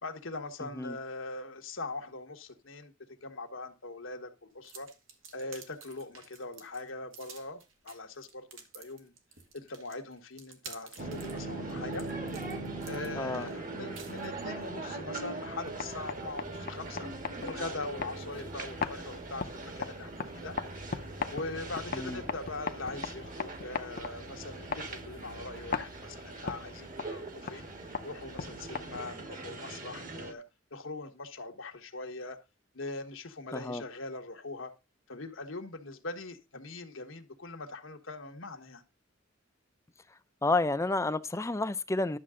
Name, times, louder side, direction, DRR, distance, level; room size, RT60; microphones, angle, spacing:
voice 1, 0.0-2.9 3.2-4.9 5.3-9.1 9.5-12.1 12.8-17.1 17.4-20.6 20.9-21.0 21.3-27.7 28.0-30.4 30.7-32.4 32.7-34.7 35.1-38.8, left 3 dB, 80° left, 1.4 m, -41 dB
sound 1, 4.6-14.7, right 6 dB, 85° right, 1.8 m, -51 dB
sound 2, 11.0-30.3, right 2 dB, 45° right, 1.4 m, -41 dB
voice 2, 13.2-13.5 21.9-22.2 33.5-33.8 40.4-42.2, left 2 dB, 15° left, 0.5 m, -30 dB
sound 3, 15.5-29.3, left 5 dB, 50° left, 0.7 m, -40 dB
11.5 x 6.6 x 3.7 m
head